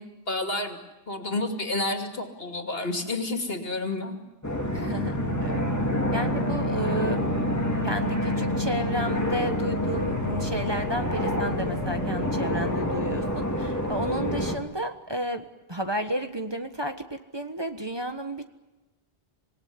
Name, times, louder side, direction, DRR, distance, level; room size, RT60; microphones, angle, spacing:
voice 1, 0.3-0.8 1.1-4.2, left 2 dB, 70° left, 4 dB, 3.0 m, -30 dB
sound 1, 4.4-14.6, left 1 dB, 15° left, 2.4 m, -27 dB
voice 2, 4.7-5.2 5.4-5.7 6.1-7.2 7.8-18.4, right 1 dB, 25° right, 6 dB, 1.3 m, -32 dB
26.5 x 18.5 x 9.7 m, 1.1 s
omnidirectional pair, 1.0 m